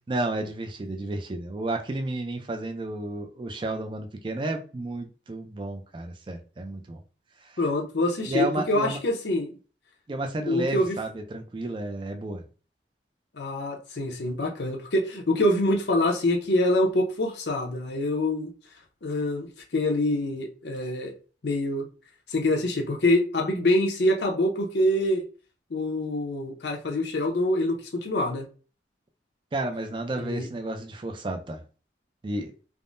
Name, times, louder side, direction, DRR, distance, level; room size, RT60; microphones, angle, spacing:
voice 1, 0.1-7.0 7.4-7.5 8.3-9.0 10.1-12.4 29.5-31.6 32.2-32.5, right 2 dB, 25° right, 0.4 m, -32 dB
voice 2, 7.6-9.5 10.5-11.0 13.3-18.5 19.0-21.1 21.4-21.9 22.3-25.2 25.7-28.4 30.2-30.5, left 1 dB, 70° left, 0.7 m, -25 dB
3.5 x 2.0 x 2.5 m
head